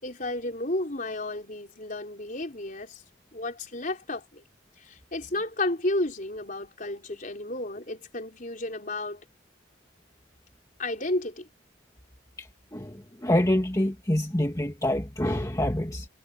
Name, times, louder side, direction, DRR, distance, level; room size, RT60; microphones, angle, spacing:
voice 1, 0.0-3.0 3.3-4.4 4.8-9.2 10.8-11.5, left 2 dB, 40° left, 4.6 m, -32 dB
voice 2, 12.4-16.1, left 1 dB, 15° left, 1.8 m, -26 dB
head